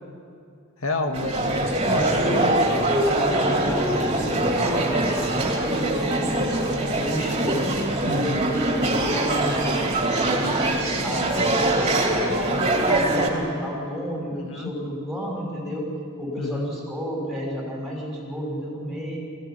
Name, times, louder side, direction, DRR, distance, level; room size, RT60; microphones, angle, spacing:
voice 1, 0.8-2.5 8.0-8.5 14.3-14.7 16.4-16.7, left 2 dB, 75° left, 5 dB, 1.6 m, -29 dB
sound 1, 1.1-13.3, right 1 dB, 25° right, 2.9 m, -23 dB
voice 2, 1.9-2.6 3.1-4.7 5.2-6.5 6.9-7.8 8.8-10.5 11.0-11.6 12.1-15.9 16.2-19.2, equal, ahead, -3 dB, 5.5 m, -31 dB
20.5 x 15.5 x 9.9 m, 2.4 s
head